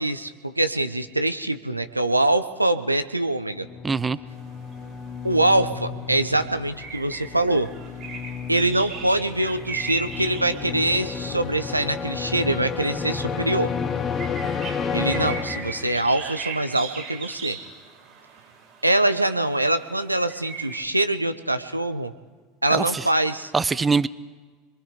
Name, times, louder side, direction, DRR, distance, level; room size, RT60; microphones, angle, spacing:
voice 1, 0.0-3.7 5.2-7.7 8.5-13.7 14.9-17.6 18.8-22.1 22.6-23.5, right 1 dB, 90° right, 10 dB, 0.9 m, -24 dB
sound 1, 3.5-16.2, left 6 dB, 25° left, 1.6 m, -32 dB
voice 2, 3.8-4.2 22.7-23.0 23.5-24.1, right 4 dB, 15° right, 18 dB, 0.6 m, -22 dB
sound 2, 4.3-20.8, right 5 dB, 35° right, 5.4 m, -38 dB
26.0 x 23.0 x 5.1 m, 1.4 s
figure-of-eight pair, 75°, 0 cm